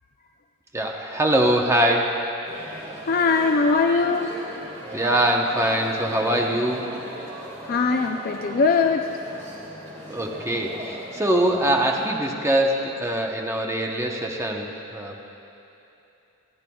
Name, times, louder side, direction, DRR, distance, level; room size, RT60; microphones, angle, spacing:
voice 1, 0.7-2.2 4.9-6.9 10.1-15.2, right 1 dB, 15° right, 0 dB, 0.8 m, -23 dB
sound 1, 2.4-12.1, right 1 dB, 35° right, 2.8 m, -38 dB
voice 2, 3.1-4.3 7.7-9.1, left 4 dB, 40° left, 4 dB, 0.4 m, -21 dB
28.5 x 10.5 x 2.3 m, 2.9 s
head